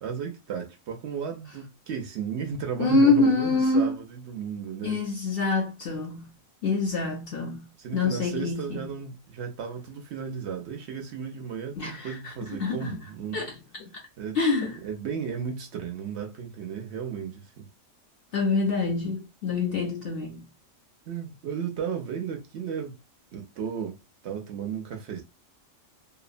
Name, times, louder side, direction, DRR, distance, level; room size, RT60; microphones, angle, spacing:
voice 1, 0.0-5.0 7.8-13.5 14.2-14.4 14.8-17.7 21.1-23.0 23.3-24.0 24.2-25.2, right 7 dB, 65° right, 0.8 m, -34 dB
voice 2, 2.8-3.9 4.8-6.3 6.6-7.7 7.9-8.9 11.8-12.3 12.6-13.0 13.3-13.9 14.3-14.8 18.3-20.5, left 3 dB, 60° left, 0.6 m, -25 dB
2.7 x 2.0 x 2.4 m
omnidirectional pair, 1.4 m